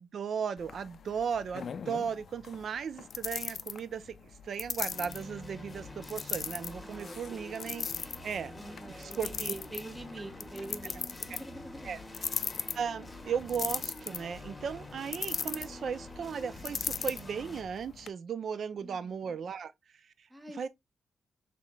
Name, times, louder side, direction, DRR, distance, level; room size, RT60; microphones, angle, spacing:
voice 1, 0.0-8.5 8.9-9.5 11.3-11.4 11.8-12.0 12.7-19.7 20.5-20.7, right 7 dB, 60° right, 0.5 m, -36 dB
sound 1, 0.6-18.1, left 6 dB, 55° left, 0.4 m, -40 dB
sound 2, 4.9-17.6, left 1 dB, 15° left, 1.4 m, -47 dB
voice 2, 6.8-7.6 8.5-11.9 18.8-19.3 20.3-20.7, right 2 dB, 15° right, 1.1 m, -46 dB
5.6 x 3.7 x 2.3 m
cardioid pair, 110°, 0 cm